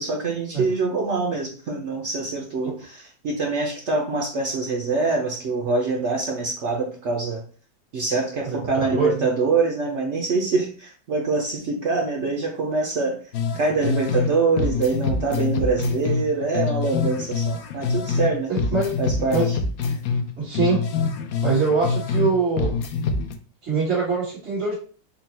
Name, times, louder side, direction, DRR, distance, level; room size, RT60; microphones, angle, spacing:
voice 1, 0.0-7.4 7.9-13.2 13.5-18.5 19.0-19.6 19.8-20.0, right 3 dB, 85° right, 1 dB, 0.6 m, -24 dB
voice 2, 8.4-9.1 18.5-18.9 19.3-19.5 20.4-20.9 21.4-22.8 23.6-24.7, right 4 dB, 40° right, -10 dB, 1.6 m, -23 dB
sound 1, 13.3-14.3 14.6-18.3 18.6-22.3 22.6-23.3, left 5 dB, 75° left, 0.8 m, -25 dB
4.1 x 2.2 x 4.1 m, 0.41 s
omnidirectional pair, 2.0 m